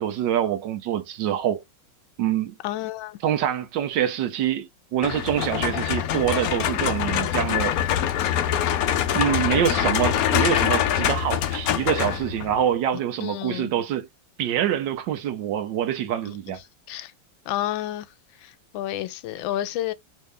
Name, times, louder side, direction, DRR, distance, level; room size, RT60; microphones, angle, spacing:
voice 1, 0.0-1.6 2.2-2.5 3.2-7.8 9.1-14.1 14.4-16.6, right 10 dB, 75° right, 1.3 m, -25 dB
voice 2, 2.6-3.2 13.2-13.7 16.9-17.1 17.5-18.1 18.4-19.9, left 13 dB, 90° left, 1.4 m, -30 dB
sound 1, 5.0-12.6, left 10 dB, 70° left, 0.8 m, -24 dB
3.4 x 2.7 x 3.2 m
omnidirectional pair, 2.0 m